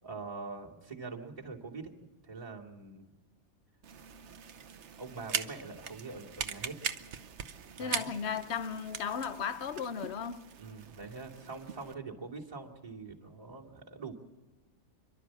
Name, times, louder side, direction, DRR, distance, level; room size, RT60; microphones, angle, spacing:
voice 1, 0.0-1.9 2.2-3.1 5.0-6.8 7.8-8.1 10.6-14.1, right 4 dB, 25° right, 2.6 m, -44 dB
sound 1, 3.8-11.9, right 7 dB, 60° right, 1.1 m, -41 dB
voice 2, 7.8-10.4, left 7 dB, 55° left, 1.0 m, -35 dB
28.5 x 12.0 x 7.5 m
omnidirectional pair, 1.4 m